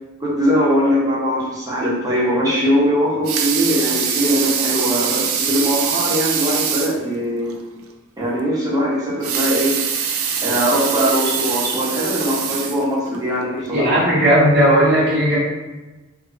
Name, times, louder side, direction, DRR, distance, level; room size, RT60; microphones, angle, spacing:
voice 1, 0.2-7.5 8.2-9.8 10.4-14.0, equal, 20° right, -7 dB, 0.9 m, -20 dB
Water tap faucet / Sink (filling or washing) / Liquid, 3.0-7.0 7.5-7.6 7.9-8.0 9.1-13.2 13.8-13.9, right 7 dB, 85° right, 0.4 m, -23 dB
voice 2, 13.7-15.4, equal, 55° right, -8 dB, 1.4 m, -15 dB
2.6 x 2.5 x 3.7 m, 1.1 s
head